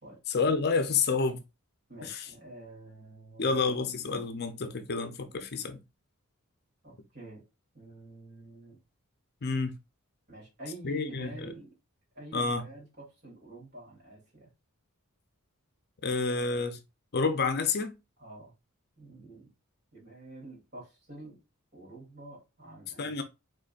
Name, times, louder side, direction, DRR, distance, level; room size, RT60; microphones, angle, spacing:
voice 1, 0.3-1.4 2.0-2.3 3.4-5.8 9.4-9.7 10.8-11.5 12.3-12.6 16.0-16.8 17.1-17.9 23.0-23.2, left 4 dB, 50° left, 0.6 m, -29 dB
voice 2, 1.9-3.8 6.8-7.4 7.7-8.8 10.3-11.7 12.1-14.5 18.2-18.5 19.0-19.5 19.9-21.4 21.7-23.2, right 2 dB, 50° right, 2.9 m, -48 dB
5.2 x 3.9 x 2.5 m
head